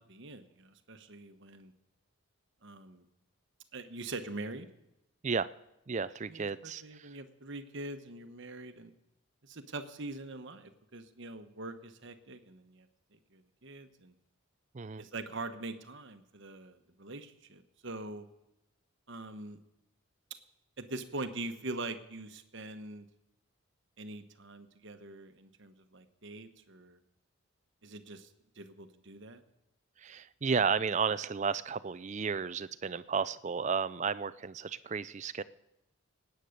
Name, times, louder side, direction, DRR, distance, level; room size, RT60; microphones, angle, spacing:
voice 1, 0.0-1.7 2.6-3.0 3.7-4.7 6.3-8.9 9.4-12.9 13.1-14.1 15.0-18.3 19.1-19.6 20.8-23.1 24.0-27.0 27.8-28.3 28.6-29.4, right 2 dB, 55° right, 8 dB, 1.1 m, -43 dB
voice 2, 5.9-7.2 14.7-15.0 30.0-35.4, right 5 dB, 30° right, 16 dB, 0.4 m, -33 dB
18.5 x 9.2 x 6.6 m, 0.89 s
head